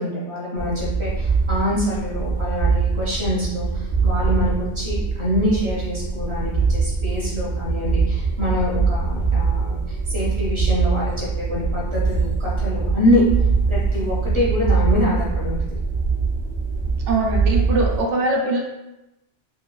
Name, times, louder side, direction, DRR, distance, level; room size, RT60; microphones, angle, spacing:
voice 1, 0.0-13.2 13.7-15.6, left 1 dB, 35° right, -6 dB, 0.5 m, -25 dB
sound 1, 0.6-18.0, right 4 dB, 55° left, 1.0 m, -23 dB
voice 2, 17.1-18.6, right 2 dB, 80° right, -1 dB, 0.9 m, -21 dB
3.0 x 2.3 x 2.2 m, 0.95 s
omnidirectional pair, 1.2 m